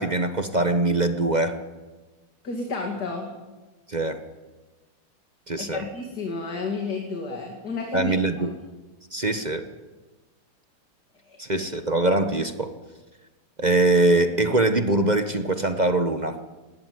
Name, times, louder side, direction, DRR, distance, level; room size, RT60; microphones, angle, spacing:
voice 1, 0.0-1.5 3.9-4.2 5.5-5.8 7.9-8.5 9.1-9.7 11.4-12.7 13.6-16.4, right 2 dB, 30° right, 8 dB, 0.8 m, -22 dB
voice 2, 2.4-3.3 5.6-8.5 11.3-11.4, left 3 dB, 50° left, 2 dB, 2.8 m, -31 dB
19.0 x 18.0 x 9.5 m, 1.2 s
omnidirectional pair, 2.4 m